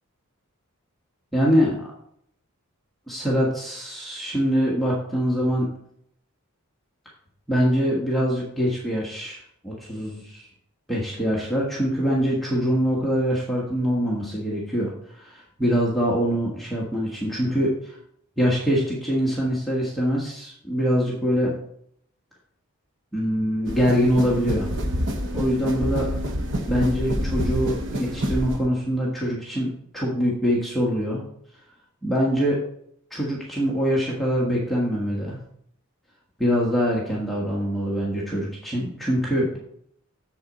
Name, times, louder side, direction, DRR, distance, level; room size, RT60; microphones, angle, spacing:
voice 1, 1.3-1.8 3.1-5.7 7.5-10.4 10.9-18.0 18.4-21.5 23.1-24.7 25.3-26.1 26.7-31.2 32.0-32.6 33.1-35.4 36.4-39.6, equal, ahead, -6 dB, 1.4 m, -24 dB
sound 1, 23.7-28.6, equal, 55° right, 1.0 m, -27 dB
7.7 x 7.3 x 4.0 m, 0.69 s
head